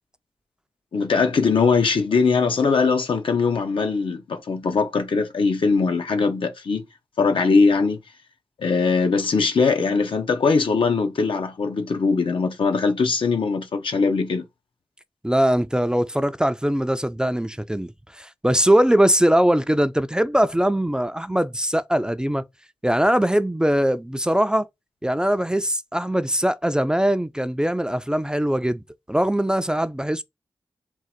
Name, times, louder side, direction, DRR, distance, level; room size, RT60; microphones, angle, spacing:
voice 1, 0.9-6.8 7.2-8.0 8.6-14.4, left 4 dB, 80° left, 0.8 m, -21 dB
voice 2, 15.2-22.4 22.8-24.7 25.0-28.8 29.1-30.2, right 1 dB, 10° right, 0.4 m, -21 dB
3.7 x 2.4 x 4.4 m
cardioid pair, 65°, 9 cm